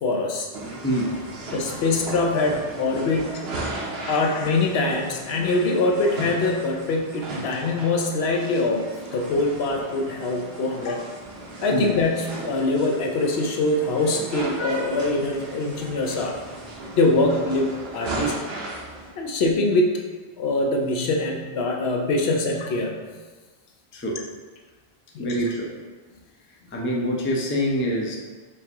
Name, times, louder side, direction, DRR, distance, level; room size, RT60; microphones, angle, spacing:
voice 1, 0.0-0.5 1.5-3.3 4.1-8.9 9.1-11.1 11.6-16.4 17.0-18.4 19.2-20.0 20.4-23.0 25.1-25.5, left 2 dB, 75° left, 1 dB, 0.9 m, -23 dB
sound 1, 0.5-19.1, right 2 dB, 70° right, 1.0 m, -36 dB
voice 2, 25.2-25.7 26.7-28.2, equal, 20° left, -2 dB, 0.4 m, -25 dB
4.5 x 3.4 x 2.9 m, 1.4 s
omnidirectional pair, 1.1 m